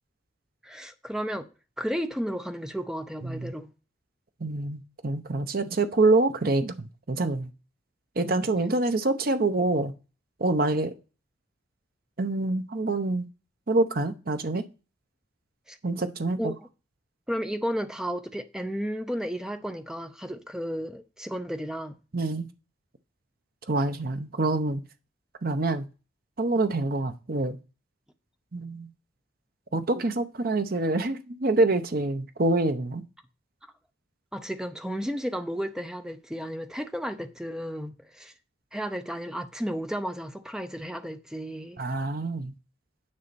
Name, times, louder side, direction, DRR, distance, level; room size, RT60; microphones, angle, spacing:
voice 1, 0.6-1.5 1.8-3.7 15.7-15.8 16.4-16.7 17.3-22.0 34.3-38.3 38.7-41.8, equal, 5° right, 0.6 m, -33 dB
voice 2, 3.2-3.5 4.4-7.5 8.2-9.9 10.4-10.9 12.2-13.2 13.7-14.6 15.8-16.5 22.1-22.5 23.7-24.8 25.4-25.8 26.4-27.6 28.5-28.9 29.7-33.0 41.8-42.5, right 2 dB, 45° right, 0.8 m, -26 dB
9.7 x 5.6 x 4.2 m
head